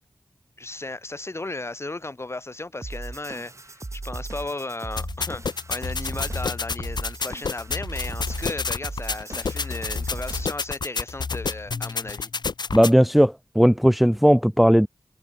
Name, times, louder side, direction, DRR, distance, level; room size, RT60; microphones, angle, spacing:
voice 1, 0.6-5.4 5.7-12.3, left 2 dB, 35° left, 4.8 m, -35 dB
sound 1, 2.8-10.7, right 2 dB, 40° right, 4.3 m, -37 dB
sound 2, 5.0-12.9, left 4 dB, 80° left, 1.5 m, -29 dB
voice 2, 12.7-14.9, equal, ahead, 1.0 m, -17 dB
wide cardioid pair, 85°, 7 cm